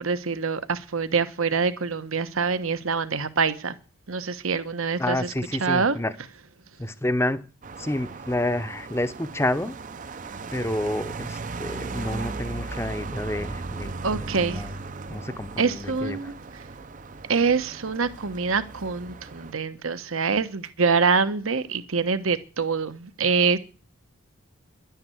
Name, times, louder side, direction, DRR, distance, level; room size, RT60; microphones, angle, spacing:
voice 1, 0.0-3.8 4.1-5.3 5.6-6.0 14.0-14.6 15.6-16.3 17.3-23.6, right 5 dB, 75° right, 1.1 m, -25 dB
voice 2, 5.0-6.1 6.8-7.5 7.8-9.8 10.5-14.8 15.1-16.3, left 1 dB, 10° left, 0.7 m, -29 dB
sound 1, 7.6-19.5, right 3 dB, 35° right, 0.6 m, -37 dB
11.5 x 9.5 x 7.8 m
head